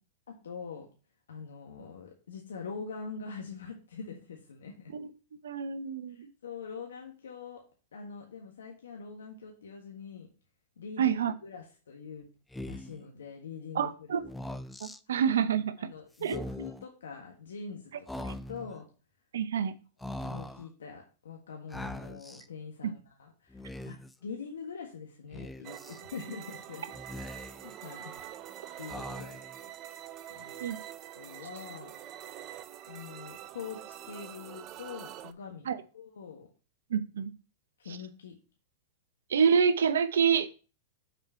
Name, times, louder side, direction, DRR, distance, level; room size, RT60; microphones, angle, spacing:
voice 1, 0.3-0.9 1.3-4.9 6.1-7.6 7.9-10.3 10.8-11.1 11.4-12.2 12.6-14.2 15.1-15.2 15.8-18.9 20.2-26.9 27.6-28.2 28.8-29.4 30.3-30.7 31.1-31.9 32.9-35.7 35.9-36.5 37.8-38.3, left 5 dB, 80° left, 1 dB, 1.4 m, -44 dB
voice 2, 5.4-6.3 11.0-11.3 13.7-14.2 14.8-15.9 16.2-16.3 18.2-18.3 19.3-19.7 30.6-30.8 35.7-35.8 36.9-37.3 39.3-40.5, right 7 dB, 75° right, 13 dB, 0.8 m, -27 dB
Speech, 12.5-13.0 14.2-15.0 16.2-16.9 18.1-18.8 20.0-20.7 21.7-22.5 23.5-24.2 25.3-26.0 26.9-27.7 28.9-29.6, left 1 dB, 5° left, 0.5 m, -41 dB
sound 1, 25.6-35.3, right 12 dB, 40° right, 0.6 m, -45 dB
6.5 x 4.5 x 5.6 m, 0.36 s
hypercardioid pair, 110°, 0 cm